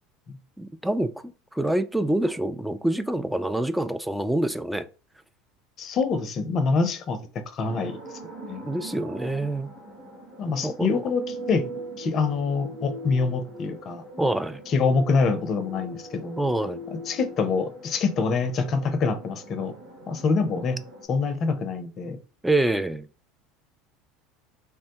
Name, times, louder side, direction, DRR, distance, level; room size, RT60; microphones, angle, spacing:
voice 1, 0.6-1.1 1.5-4.9 8.7-9.7 10.6-11.0 14.2-14.6 16.4-16.8 22.4-23.1, right 1 dB, 5° right, 0.3 m, -26 dB
voice 2, 5.8-7.2 7.5-8.0 8.5-8.6 10.4-11.6 12.0-14.0 14.7-16.4 17.1-19.7 20.1-20.8 21.1-22.2, left 4 dB, 45° left, 0.5 m, -25 dB
sound 1, 7.6-21.0, right 1 dB, 60° right, 1.4 m, -41 dB
3.3 x 2.1 x 2.8 m
hypercardioid pair, 75°, 0 cm